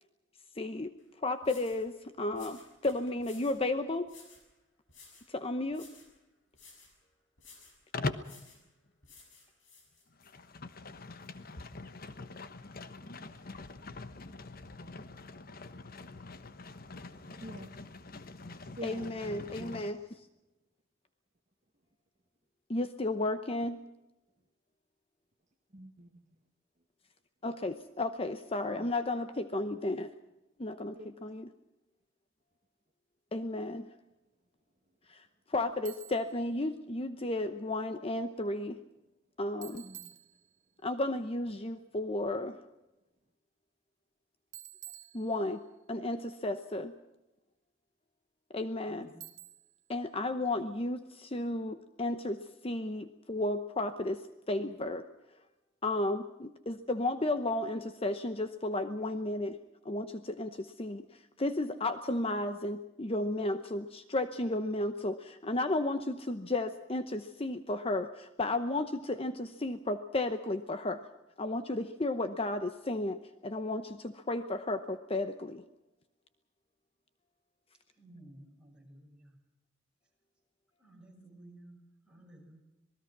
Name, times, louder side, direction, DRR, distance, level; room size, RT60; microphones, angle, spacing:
voice 1, 0.6-0.9 1.2-4.1 5.3-5.9 18.8-20.0 22.7-23.8 27.4-30.1 30.6-31.5 33.3-33.9 35.1-38.8 39.4-39.9 40.8-42.6 45.1-45.6 45.9-46.9 48.5-49.1 49.9-54.2 54.5-55.0 55.8-59.6 59.8-61.0 61.4-71.0 71.4-75.6, left 2 dB, 30° left, 9 dB, 0.9 m, -33 dB
sound 1, 1.0-1.1 1.4-1.9 2.3-3.6 4.1-4.5 4.9-5.3 5.7-6.1 6.5-6.9 7.4-7.8 8.2-8.6 9.0-10.3, left 4 dB, 75° left, 6.7 m, -56 dB
Livestock farm animals working animals, 7.9-8.4 10.1-19.9, left 3 dB, 50° left, 1.2 m, -43 dB
voice 2, 17.4-17.8 18.6-19.9 25.7-26.4 28.7-28.9 30.9-31.1 39.8-40.1, right 1 dB, 40° right, 5 dB, 1.6 m, -48 dB
Bicycle, 35.9-36.4 39.6-40.8 44.5-45.8 49.2-49.9, right 13 dB, 65° right, 1.6 m, -50 dB
voice 3, 48.8-49.2 77.9-79.4 80.8-82.6, right 1 dB, 5° right, -1 dB, 6.5 m, -55 dB
26.5 x 20.0 x 6.0 m, 0.98 s
head